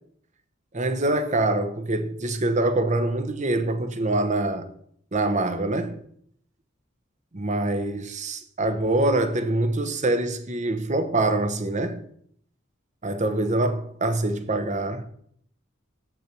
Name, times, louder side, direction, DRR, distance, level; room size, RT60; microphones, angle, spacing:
voice 1, 0.7-4.7 5.1-6.0 7.3-12.0 13.0-15.0, right 2 dB, 35° right, 1.0 m, -25 dB
7.7 x 6.1 x 6.8 m
head